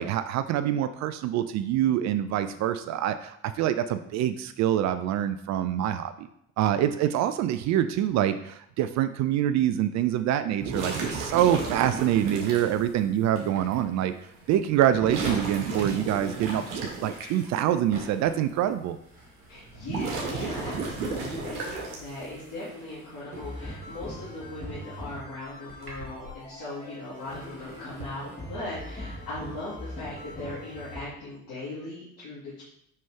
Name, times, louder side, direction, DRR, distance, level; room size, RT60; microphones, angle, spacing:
voice 1, 0.0-6.3 6.6-14.1 14.5-19.0, right 11 dB, 40° right, 11 dB, 0.4 m, -25 dB
sound 1, 10.6-12.7 13.7-13.8 14.9-17.2 19.7-22.3, right 4 dB, 65° right, 1.5 m, -33 dB
sound 2, 12.8-15.8 16.3-21.6 21.9-26.7 27.1-28.4, right 1 dB, 85° right, 1.3 m, -46 dB
voice 2, 19.5-32.6, left 2 dB, 50° left, -10 dB, 2.5 m, -39 dB
sound 3, 23.3-31.0, left 1 dB, 20° left, 2.4 m, -42 dB
5.4 x 5.2 x 3.4 m, 0.73 s
figure-of-eight pair, 50°, 43 cm